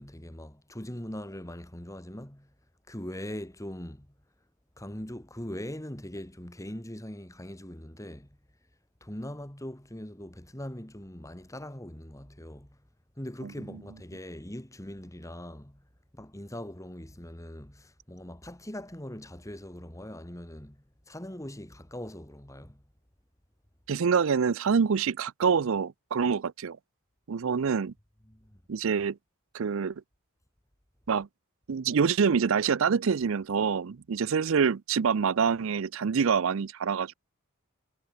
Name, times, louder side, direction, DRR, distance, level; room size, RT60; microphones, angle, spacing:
voice 1, 0.0-2.5 2.9-4.1 4.8-8.3 9.0-12.8 13.2-15.8 16.1-22.8 28.3-28.6, left 1 dB, 15° left, 2.2 m, -41 dB
voice 2, 23.9-26.8 27.3-27.9 28.7-29.2 29.5-29.9 31.1-31.3 31.7-37.1, right 6 dB, 60° right, 0.5 m, -26 dB
head